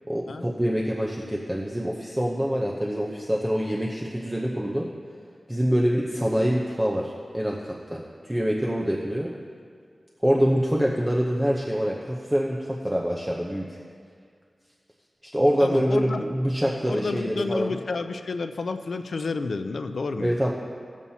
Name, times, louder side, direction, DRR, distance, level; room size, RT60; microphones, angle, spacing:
voice 1, 0.1-4.9 5.5-7.6 7.9-9.3 10.2-13.8 15.2-17.8 20.2-20.5, equal, 10° right, -3 dB, 0.7 m, -25 dB
voice 2, 15.6-16.3 16.9-20.3, left 3 dB, 75° left, 8 dB, 0.5 m, -30 dB
17.5 x 7.2 x 2.8 m, 2.1 s
wide cardioid pair, 105°, 0 cm